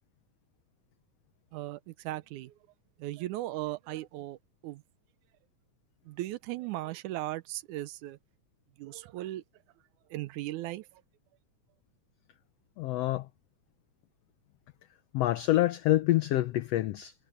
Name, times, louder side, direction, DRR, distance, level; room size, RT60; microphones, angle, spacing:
voice 1, 1.5-2.5 3.0-4.4 4.6-4.8 6.1-8.2 8.8-9.4 10.1-10.8, right 16 dB, 80° right, 2.1 m, -37 dB
voice 2, 12.8-13.3 15.1-17.1, left 15 dB, 80° left, 1.4 m, -26 dB
omnidirectional pair, 3.5 m